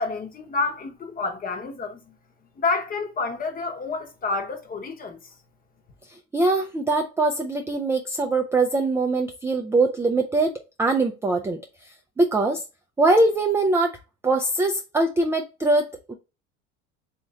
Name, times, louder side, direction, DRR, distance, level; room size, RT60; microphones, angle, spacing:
voice 1, 0.0-2.2 2.6-5.3, left 3 dB, 25° left, 0.8 m, -29 dB
voice 2, 6.1-10.5 10.8-11.6 12.2-12.6 13.0-14.0 14.2-16.1, right 2 dB, 10° right, 0.3 m, -22 dB
3.1 x 2.4 x 3.8 m
hypercardioid pair, 90°, 34 cm